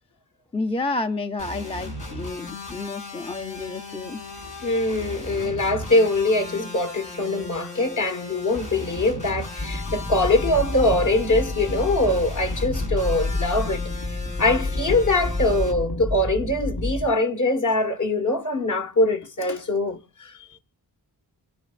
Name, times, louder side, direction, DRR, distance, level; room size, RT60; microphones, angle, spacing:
voice 1, 0.5-4.2 20.3-20.6, left 3 dB, 15° left, 0.5 m, -30 dB
sound 1, 1.4-15.7, left 2 dB, 85° left, 5.9 m, -37 dB
voice 2, 4.6-13.8 14.4-20.3, left 2 dB, 45° left, 1.5 m, -23 dB
sound 2, 9.6-17.1, left 2 dB, 60° left, 4.1 m, -29 dB
27.0 x 10.0 x 2.5 m
wide cardioid pair, 90°, 42 cm